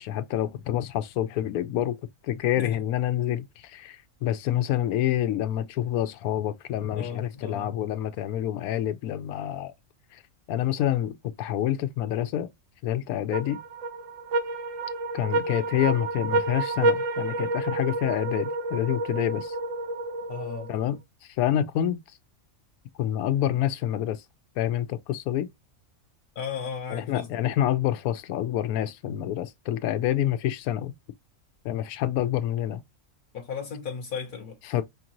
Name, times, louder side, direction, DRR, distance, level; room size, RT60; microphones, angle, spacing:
voice 1, 0.0-2.0 2.2-9.7 10.1-10.2 10.5-12.5 12.8-13.6 15.1-19.6 20.7-22.0 23.0-24.2 24.6-25.5 26.9-30.9 31.6-32.8 34.7-34.8, left 11 dB, 90° left, 1.0 m, -27 dB
voice 2, 6.9-7.7 20.3-20.7 26.4-27.3 33.3-34.6, left 6 dB, 50° left, 0.6 m, -35 dB
sound 1, 13.3-20.9, right 2 dB, 70° right, 1.0 m, -29 dB
5.1 x 2.5 x 2.9 m
omnidirectional pair, 1.5 m